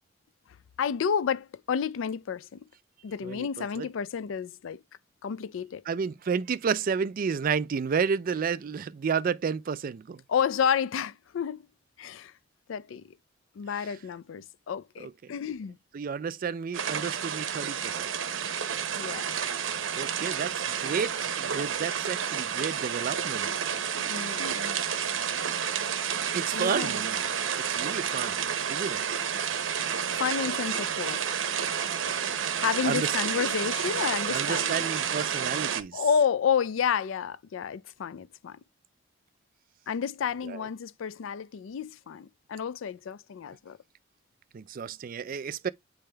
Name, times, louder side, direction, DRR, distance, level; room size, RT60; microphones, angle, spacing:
voice 1, 0.8-2.6 3.0-4.8 5.2-5.8 10.3-11.7 12.0-12.3 12.7-13.1 13.6-15.8 18.9-19.3 23.9-24.8 26.5-27.0 30.2-31.2 32.6-34.9 35.9-38.6 39.9-43.8, left 7 dB, 90° left, 0.4 m, -30 dB
voice 2, 3.2-3.9 5.9-10.2 15.0-15.1 15.9-18.1 19.9-23.5 26.3-27.2 27.6-29.0 32.8-33.1 34.3-36.0 40.4-40.6 44.5-45.7, right 6 dB, 45° right, 0.4 m, -31 dB
sound 1, 16.7-35.8, right 8 dB, 90° right, 0.7 m, -30 dB
8.8 x 3.4 x 3.3 m
head